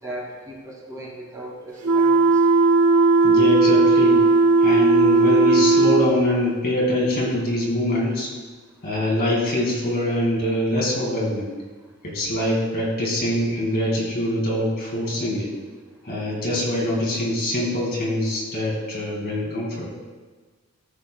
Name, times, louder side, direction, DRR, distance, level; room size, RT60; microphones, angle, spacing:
voice 1, 0.0-2.4, right 1 dB, 15° right, -4 dB, 2.3 m, -37 dB
sound 1, 1.8-6.1, right 3 dB, 85° right, 1.3 m, -16 dB
voice 2, 3.2-4.3 4.6-8.3 8.8-11.5 12.0-15.5 16.0-19.9, left 1 dB, 45° left, -3 dB, 2.4 m, -24 dB
15.0 x 6.5 x 2.3 m, 1.4 s
head